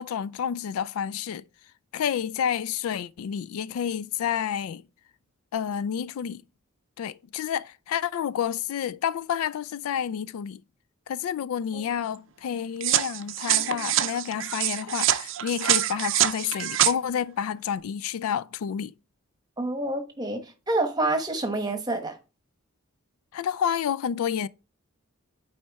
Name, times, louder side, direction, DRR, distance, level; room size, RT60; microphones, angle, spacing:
voice 1, 0.0-1.4 1.9-4.8 5.5-6.4 7.0-10.6 11.1-18.9 23.3-24.5, left 8 dB, 75° left, 0.3 m, -29 dB
sound 1, 12.8-16.9, right 12 dB, 60° right, 0.5 m, -25 dB
voice 2, 19.6-22.2, right 2 dB, 15° right, 1.0 m, -28 dB
8.5 x 4.3 x 3.4 m
head